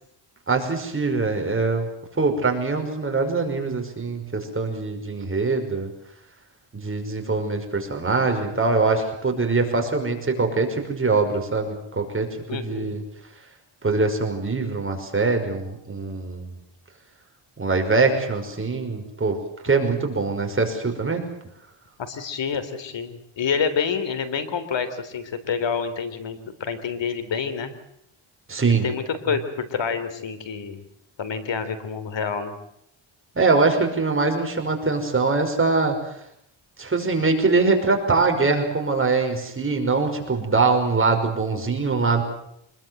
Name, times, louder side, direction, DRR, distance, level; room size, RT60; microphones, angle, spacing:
voice 1, 0.5-1.9 2.2-5.9 6.7-13.0 13.8-16.5 17.6-19.4 19.6-21.3 28.5-28.9 33.4-36.2 36.8-42.2, right 3 dB, 25° right, 4 dB, 5.6 m, -23 dB
voice 2, 12.5-13.0 22.0-27.7 28.8-30.8 31.2-32.6, left 6 dB, 60° left, 11 dB, 3.6 m, -28 dB
26.0 x 21.5 x 7.9 m, 0.74 s
cardioid pair, 110°, 49 cm